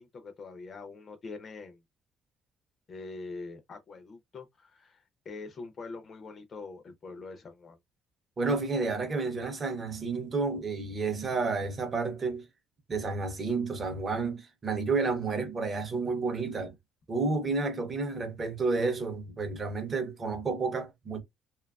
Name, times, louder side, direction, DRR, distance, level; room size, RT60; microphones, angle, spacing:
voice 1, 0.0-1.8 2.9-7.8, left 3 dB, 30° left, 0.5 m, -44 dB
voice 2, 8.4-12.5 12.9-16.7 17.1-21.2, right 4 dB, 25° right, 0.6 m, -31 dB
2.7 x 2.3 x 2.2 m
cardioid pair, 170°, 0 cm